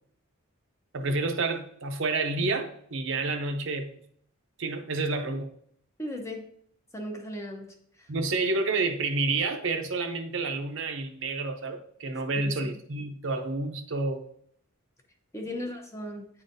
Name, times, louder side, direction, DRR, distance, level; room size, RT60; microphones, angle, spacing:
voice 1, 0.9-3.9 4.6-5.5 8.1-14.2 15.5-15.6, right 3 dB, 60° right, 6 dB, 0.6 m, -29 dB
voice 2, 6.0-6.5 6.9-8.1 15.3-16.3, left 1 dB, 15° left, 3 dB, 0.6 m, -37 dB
9.4 x 3.9 x 2.6 m, 0.66 s
head